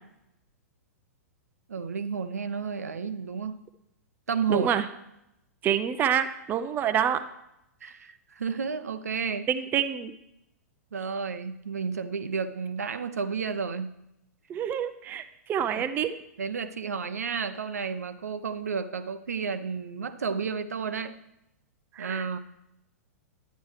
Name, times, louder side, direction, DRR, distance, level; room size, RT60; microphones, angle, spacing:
voice 1, 1.7-3.6 4.3-4.7 7.8-9.5 10.9-13.9 15.7-15.8 16.4-21.1 22.0-22.4, right 5 dB, 75° right, 11 dB, 0.6 m, -31 dB
voice 2, 4.5-4.8 5.6-7.2 9.5-10.1 14.5-16.1 22.0-22.3, right 9 dB, 20° right, 9 dB, 0.5 m, -27 dB
11.0 x 9.1 x 3.2 m, 0.84 s
figure-of-eight pair, 105°, 8 cm